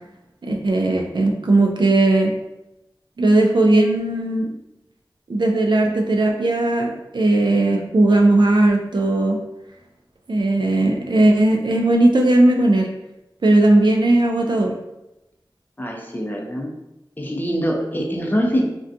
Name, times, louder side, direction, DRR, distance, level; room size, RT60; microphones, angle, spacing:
voice 1, 0.4-2.3 3.2-4.5 5.3-9.4 10.3-12.9 13.4-14.7, right 2 dB, 65° right, 1 dB, 0.4 m, -17 dB
voice 2, 15.8-16.7 17.2-18.6, equal, 20° left, 0 dB, 0.5 m, -23 dB
2.4 x 2.2 x 2.5 m, 0.92 s
wide cardioid pair, 40°, 8 cm